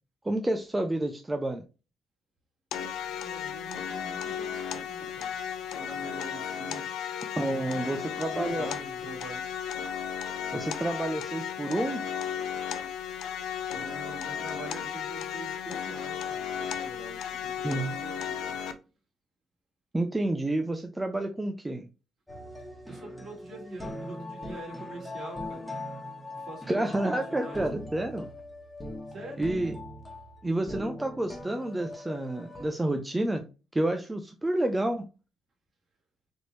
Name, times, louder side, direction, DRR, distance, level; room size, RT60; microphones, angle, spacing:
voice 1, 0.2-1.6 7.4-8.7 10.5-12.0 17.6-17.9 19.9-21.8 26.7-28.3 29.4-29.8 30.4-33.4 33.7-35.1, right 1 dB, 15° right, 0.5 m, -29 dB
sound 1, 2.7-18.7, left 8 dB, 85° left, 0.5 m, -35 dB
voice 2, 3.2-5.3 5.6-6.8 7.5-8.0 8.4-9.4 13.7-18.6 22.6-25.8 26.3-27.6 29.1-29.5, right 3 dB, 55° right, 2.4 m, -44 dB
sound 2, 22.3-32.7, left 2 dB, 10° left, 1.4 m, -41 dB
4.3 x 2.9 x 3.2 m
cardioid pair, 90°, 0 cm